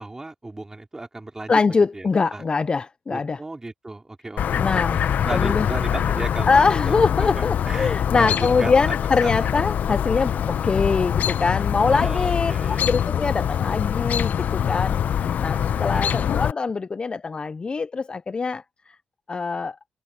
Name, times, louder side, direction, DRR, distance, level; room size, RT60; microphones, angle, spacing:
voice 1, 0.0-1.5 1.9-2.4 3.1-4.7 5.2-9.0 9.2-9.5 11.9-12.8 15.7-16.3, right 2 dB, 15° right, 3.8 m, -35 dB
voice 2, 1.5-3.4 4.5-5.0 5.3-5.7 6.5-12.5 12.8-18.6 19.3-19.8, left 4 dB, 30° left, 0.5 m, -23 dB
Chirp tweet, 4.4-16.5, left 9 dB, 65° left, 0.7 m, -24 dB
cardioid pair, 90°, 3 cm